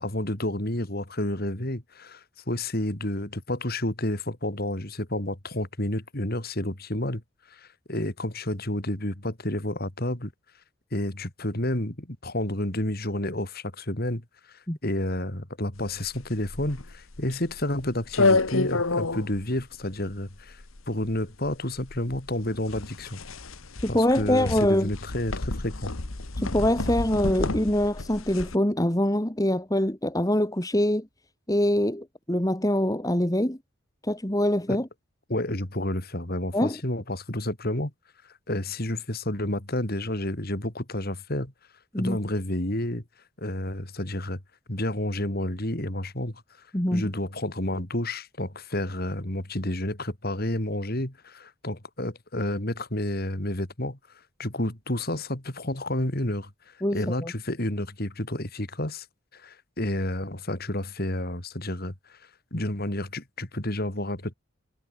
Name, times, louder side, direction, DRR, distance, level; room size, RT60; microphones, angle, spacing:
voice 1, 0.0-7.2 7.5-10.3 10.9-23.2 23.9-25.9 34.7-34.8 35.3-37.9 38.5-41.5 42.0-43.0 43.4-44.4 44.7-46.3 46.9-54.0 54.4-56.5 56.9-59.0 59.3-62.2 62.5-64.3, left 1 dB, 45° left, 3.2 m, -30 dB
sound 1, 15.8-28.6, left 3 dB, 75° left, 1.6 m, -30 dB
voice 2, 23.8-24.9 26.4-31.1 31.5-33.6 34.0-34.9 36.5-36.8 41.9-42.2 46.7-47.0 56.8-57.3, left 1 dB, 15° left, 1.9 m, -24 dB
head